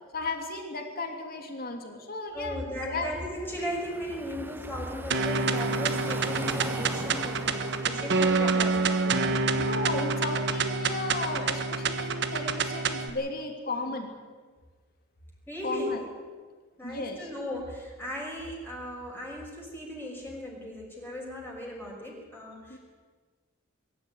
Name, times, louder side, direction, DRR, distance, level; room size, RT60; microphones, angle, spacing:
voice 1, 0.1-2.6 2.8-3.1 8.4-8.5 9.5-14.2 15.6-16.0 16.8-17.2 22.7-22.8, left 3 dB, 50° left, 3 dB, 2.9 m, -34 dB
voice 2, 2.3-9.4 13.6-13.9 15.5-16.0 16.8-22.8, equal, 10° left, -3 dB, 6.0 m, -37 dB
Car passing by / Traffic noise roadway noise, 3.2-10.1, right 1 dB, 10° right, 0.8 m, -42 dB
sound 1, 5.1-13.1, right 4 dB, 60° right, 1.5 m, -27 dB
23.0 x 13.5 x 9.5 m, 1.4 s
head